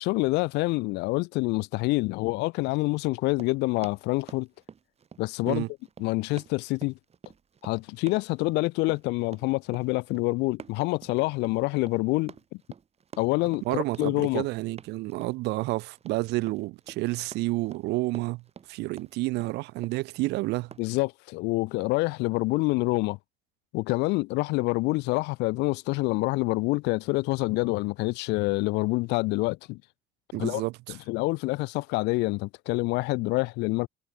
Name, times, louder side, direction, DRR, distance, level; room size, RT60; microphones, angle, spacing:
voice 1, 0.0-4.5 5.2-5.6 6.0-7.0 7.6-12.3 13.2-14.4 20.8-23.2 23.7-29.8 30.4-30.6 30.9-33.9, left 23 dB, 90° left, 0.5 m, -27 dB
Run, 3.2-20.9, right 6 dB, 40° right, 7.7 m, -49 dB
voice 2, 13.7-18.4 18.7-20.7 30.3-31.0, right 21 dB, 85° right, 0.5 m, -30 dB
cardioid pair, 110°, 17 cm